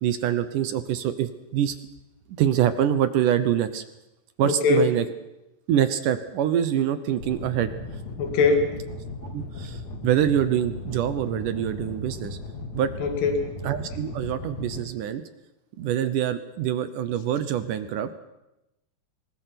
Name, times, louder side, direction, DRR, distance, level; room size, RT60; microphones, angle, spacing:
voice 1, 0.0-1.8 2.4-3.8 4.4-5.1 5.7-7.7 9.3-12.4 12.7-12.9 13.6-15.2 15.8-18.1, right 10 dB, 70° right, 12 dB, 2.0 m, -25 dB
voice 2, 4.5-4.9 8.2-8.7 13.0-13.5, left 4 dB, 75° left, 5 dB, 4.5 m, -21 dB
sound 1, 7.2-14.8, left 2 dB, 45° left, 3.2 m, -37 dB
26.5 x 21.5 x 5.9 m, 0.91 s
omnidirectional pair, 4.8 m